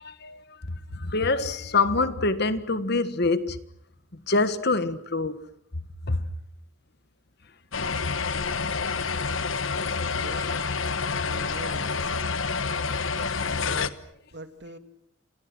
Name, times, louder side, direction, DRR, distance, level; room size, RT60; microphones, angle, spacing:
voice 1, 0.0-3.6 4.1-5.4 6.0-6.3 10.1-10.7, left 3 dB, 55° left, 1.5 m, -26 dB
sound 1, 7.7-13.9, left 4 dB, 75° left, 1.2 m, -28 dB
voice 2, 10.2-10.6 11.2-11.9 13.1-14.0 14.3-14.8, right 1 dB, 55° right, 2.7 m, -43 dB
30.0 x 27.5 x 6.2 m
head